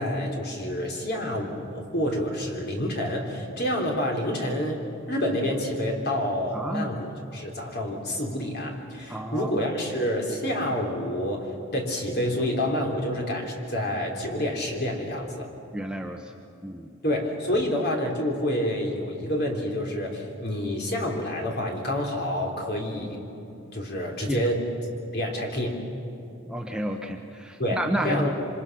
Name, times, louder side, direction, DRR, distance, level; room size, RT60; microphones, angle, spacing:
voice 1, 0.0-15.5 17.0-23.2 23.7-24.7 25.1-25.8 27.6-28.3, equal, 50° left, 1 dB, 3.5 m, -28 dB
voice 2, 6.5-6.9 9.1-9.6 15.7-16.3 16.6-16.9 24.3-24.4 26.5-28.3, right 1 dB, 5° right, 3 dB, 0.9 m, -30 dB
27.0 x 25.5 x 6.1 m, 2.7 s
head